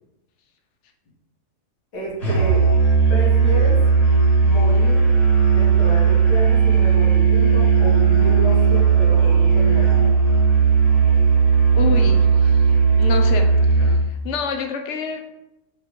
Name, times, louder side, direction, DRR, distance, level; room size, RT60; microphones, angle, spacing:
voice 1, 1.9-2.6 3.1-3.8 4.4-5.0 5.5-10.2, equal, 80° left, -5 dB, 2.3 m, -30 dB
Musical instrument, 2.2-14.1, right 5 dB, 40° left, 2.1 m, -16 dB
voice 2, 11.8-12.6 13.0-15.3, left 6 dB, 55° left, 5 dB, 0.9 m, -28 dB
5.7 x 5.3 x 3.1 m, 0.89 s
omnidirectional pair, 1.7 m